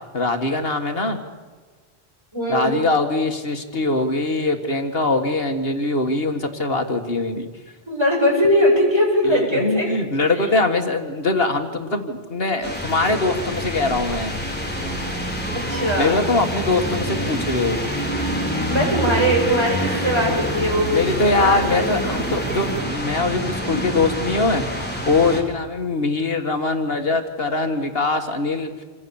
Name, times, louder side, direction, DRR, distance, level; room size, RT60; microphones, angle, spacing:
voice 1, 0.1-1.2 2.5-7.5 9.2-14.3 16.0-17.8 20.9-24.7 25.1-28.8, left 3 dB, 65° left, 5 dB, 2.0 m, -22 dB
voice 2, 2.3-2.7 7.9-9.9 15.7-16.2 18.7-21.9 23.6-23.9, equal, 25° right, -2 dB, 8.2 m, -20 dB
sound 1, 12.6-25.4, equal, 10° left, 4.3 m, -26 dB
27.5 x 26.0 x 7.2 m, 1.4 s
omnidirectional pair, 1.1 m